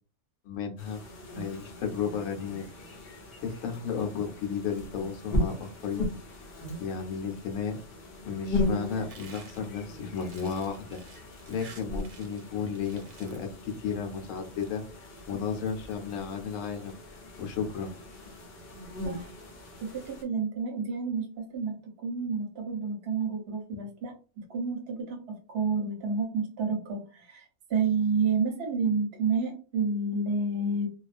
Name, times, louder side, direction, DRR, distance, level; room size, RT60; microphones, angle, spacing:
voice 1, 0.4-1.0 1.3-2.7 3.4-6.1 6.8-7.8 8.2-11.0 11.5-14.8 15.3-17.9, left 6 dB, 75° left, 3 dB, 1.0 m, -33 dB
sound 1, 0.8-20.2, left 1 dB, 55° left, 0.8 m, -38 dB
sound 2, 9.1-12.5 12.8-13.5 14.2-14.7, right 5 dB, 90° right, 1.1 m, -52 dB
voice 2, 19.8-30.9, right 4 dB, 55° right, 0 dB, 0.8 m, -30 dB
2.3 x 2.3 x 2.4 m, 0.36 s
omnidirectional pair, 1.5 m